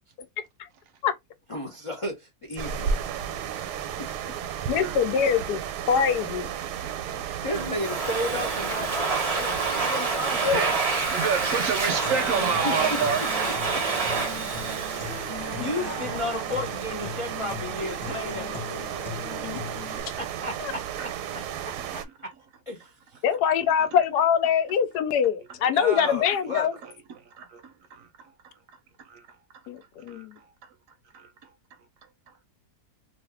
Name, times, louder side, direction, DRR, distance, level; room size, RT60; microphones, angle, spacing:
voice 1, 1.5-2.9 3.2-3.3 7.4-11.0 12.4-13.0 15.3-18.7 20.4-20.5 21.3-21.4 22.7-22.9 25.7-26.7, left 1 dB, 55° left, 0.3 m, -33 dB
sound 1, 2.6-22.1, right 8 dB, 85° right, 1.1 m, -34 dB
voice 2, 4.7-5.6 5.9-6.5 10.4-10.7 19.4-19.6 20.6-20.7 23.2-26.7 29.7-30.3, left 7 dB, 85° left, 1.1 m, -23 dB
voice 3, 6.6-7.2 10.3-10.8 11.1-13.2 19.9-20.1 21.0-21.1 21.8-22.0 26.8-26.9 27.3-28.1 29.1-29.2 30.1-30.2 31.1-31.3, right 6 dB, 70° right, 0.8 m, -30 dB
Domestic sounds home sounds, 7.5-16.0, right 4 dB, 40° right, 0.5 m, -28 dB
Human voice / Acoustic guitar, 12.0-20.0, left 4 dB, 25° left, 0.8 m, -39 dB
2.7 x 2.5 x 3.4 m
omnidirectional pair, 1.7 m